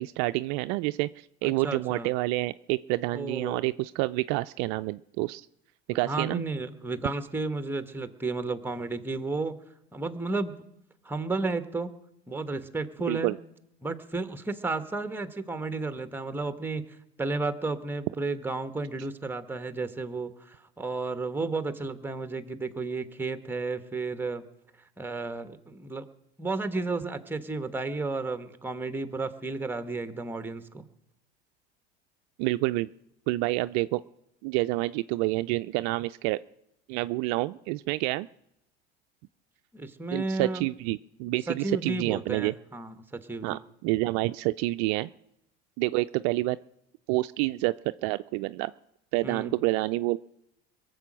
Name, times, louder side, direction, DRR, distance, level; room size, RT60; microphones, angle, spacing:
voice 1, 0.0-5.5 5.9-6.4 13.1-13.4 32.4-32.9 33.3-34.0 34.4-36.4 36.9-38.3 40.1-42.5 43.4-45.1 45.8-46.6 47.1-47.7 48.0-48.7 49.1-50.2, right 20 dB, 60° right, 13 dB, 0.4 m, -28 dB
voice 2, 1.4-2.1 3.1-3.7 6.0-9.5 9.9-10.6 11.0-11.9 12.3-13.3 13.8-16.8 17.2-24.5 25.0-26.1 26.4-30.9 39.7-40.7 41.5-43.6 49.2-49.5, right 3 dB, 5° right, 10 dB, 1.2 m, -32 dB
22.5 x 7.7 x 6.2 m, 0.83 s
hypercardioid pair, 85°, 32 cm